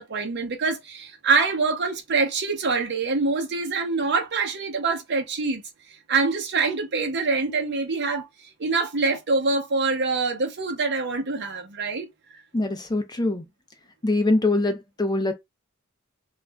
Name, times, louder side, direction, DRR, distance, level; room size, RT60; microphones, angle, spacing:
voice 1, 0.0-8.3 8.6-12.1, right 4 dB, 55° right, 0.7 m, -25 dB
voice 2, 12.5-13.4 14.0-15.3, left 2 dB, 20° left, 0.5 m, -23 dB
2.4 x 2.0 x 3.3 m
head